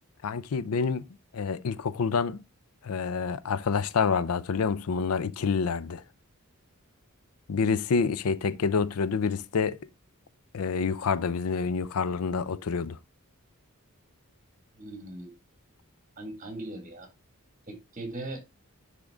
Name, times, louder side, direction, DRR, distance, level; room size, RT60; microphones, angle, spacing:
voice 1, 0.2-1.0 1.3-2.4 2.8-6.0 7.5-9.8 10.5-13.0, left 5 dB, 90° left, 0.5 m, -27 dB
voice 2, 14.8-15.3 16.2-17.1 17.7-18.5, right 2 dB, 40° right, 1.8 m, -39 dB
10.0 x 3.6 x 3.5 m
head